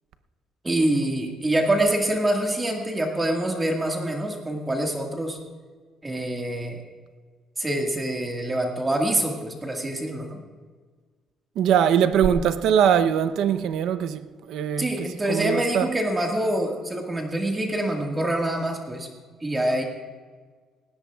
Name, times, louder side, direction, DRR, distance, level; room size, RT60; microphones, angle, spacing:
voice 1, 0.6-5.4 6.0-6.8 7.6-10.4 12.4-12.5 14.8-19.1 19.4-19.8, right 1 dB, 15° right, 1.7 m, -25 dB
voice 2, 11.6-14.2 14.5-15.9, right 8 dB, 70° right, 0.7 m, -22 dB
20.0 x 17.0 x 2.4 m
cardioid pair, 150°, 0 cm